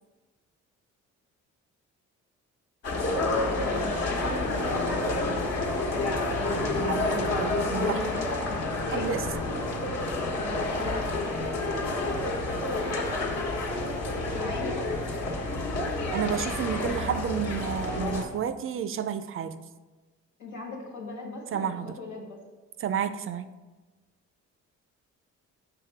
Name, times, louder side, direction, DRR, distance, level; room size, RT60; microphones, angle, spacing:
sound 1, 2.8-18.2, left 2 dB, 60° left, 1.2 m, -29 dB
voice 1, 3.2-5.4 6.5-8.2 8.9-9.1 14.3-14.8 20.4-22.4, left 2 dB, 85° left, 0 dB, 1.6 m, -39 dB
voice 2, 6.5-8.0 8.9-9.2 9.8-9.9 16.1-19.6 21.5-21.9 22.8-23.5, right 8 dB, 45° right, 11 dB, 0.4 m, -31 dB
5.9 x 3.4 x 5.7 m, 1.2 s
cardioid pair, 90°, 30 cm